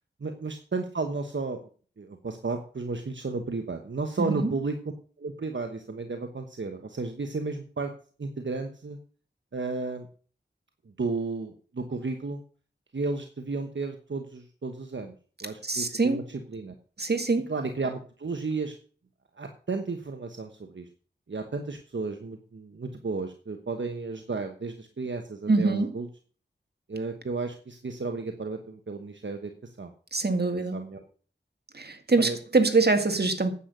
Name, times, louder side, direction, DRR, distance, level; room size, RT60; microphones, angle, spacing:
voice 1, 0.2-1.6 2.0-4.8 5.2-7.9 8.2-9.0 9.5-10.1 11.0-12.4 12.9-15.1 15.4-16.7 17.5-18.8 19.4-20.9 21.3-26.1 26.9-29.9 30.2-31.0 32.2-32.4, right 3 dB, 75° right, 1.2 m, -33 dB
voice 2, 4.2-4.5 15.6-16.2 17.0-17.5 25.5-25.9 30.1-30.8 31.7-33.5, right 3 dB, 55° right, 1.9 m, -24 dB
9.9 x 8.3 x 6.6 m
wide cardioid pair, 65°, 19 cm